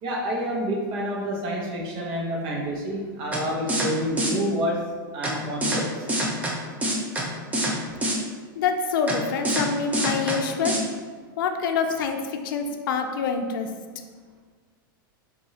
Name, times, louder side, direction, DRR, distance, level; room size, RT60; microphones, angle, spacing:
voice 1, 0.0-6.1, equal, 45° right, -2 dB, 1.1 m, -28 dB
sound 1, 3.3-3.4 3.7-3.9 4.2-4.3 5.2-5.3 5.6-5.8 6.1-6.5 6.8-7.2 7.5-7.7 8.0-8.2 9.1-9.2 9.4-9.6 9.9-10.4 10.6-10.8, right 1 dB, 15° right, 0.7 m, -25 dB
voice 2, 8.6-10.8 11.4-13.7, left 5 dB, 70° left, 5 dB, 0.5 m, -26 dB
5.3 x 2.8 x 2.8 m, 1.5 s
hypercardioid pair, 125°, 12 cm